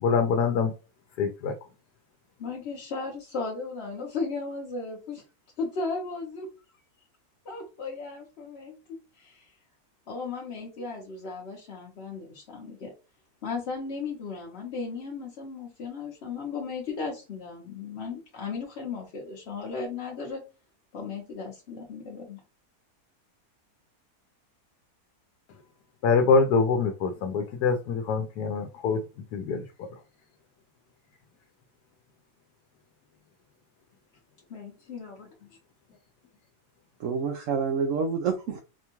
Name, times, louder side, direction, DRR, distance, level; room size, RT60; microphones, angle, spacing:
voice 1, 0.0-0.7 1.2-1.5 26.0-29.0 29.3-29.9, left 5 dB, 85° left, 5 dB, 1.2 m, -24 dB
voice 2, 2.4-5.2 5.6-6.5 7.4-9.5 10.1-12.9 13.4-20.4 20.9-22.4 34.5-35.5, left 4 dB, 50° left, -2 dB, 1.0 m, -36 dB
voice 3, 37.0-38.6, right 5 dB, 70° right, 5 dB, 0.8 m, -28 dB
4.3 x 2.3 x 2.9 m, 0.31 s
omnidirectional pair, 1.7 m